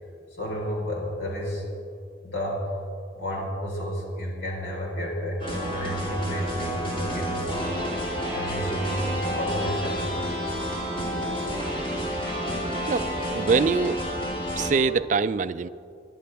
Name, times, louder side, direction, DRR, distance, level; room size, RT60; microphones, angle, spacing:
voice 1, 0.3-1.7 2.2-2.7 3.1-7.8 8.3-10.1, equal, 85° left, -3 dB, 4.1 m, -31 dB
sound 1, 5.4-14.7, equal, 30° left, 2.9 m, -29 dB
voice 2, 12.9-14.0 14.6-15.7, right 5 dB, 40° right, 14 dB, 0.3 m, -24 dB
22.5 x 11.0 x 3.4 m, 2.4 s
head